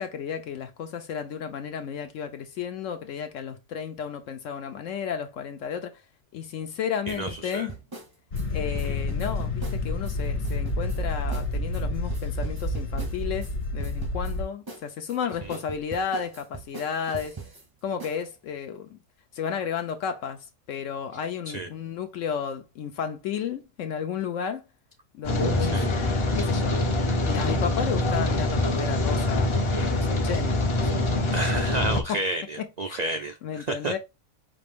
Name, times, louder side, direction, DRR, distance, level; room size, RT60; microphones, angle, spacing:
voice 1, 0.0-6.0 6.3-7.7 8.5-17.3 17.8-19.0 19.3-24.6 25.1-26.1 26.4-26.8 27.2-31.6 32.1-32.2 32.9-33.0 33.4-34.0, left 7 dB, 75° left, 1.0 m, -33 dB
sound 1, 7.1-10.2 10.4-11.0 11.3-11.5 11.7-13.5 13.8-14.3 14.7-17.6 18.0-18.2, right 4 dB, 25° right, 0.5 m, -40 dB
voice 2, 7.1-7.7 8.8-9.0 15.4-15.6 21.5-21.7 25.6-25.9 31.3-34.0, right 2 dB, 80° right, 0.3 m, -31 dB
sound 2, 8.3-14.4, left 2 dB, 55° left, 1.2 m, -29 dB
Rain, 25.2-32.0, left 1 dB, 35° left, 0.5 m, -24 dB
5.0 x 2.5 x 3.4 m
omnidirectional pair, 1.4 m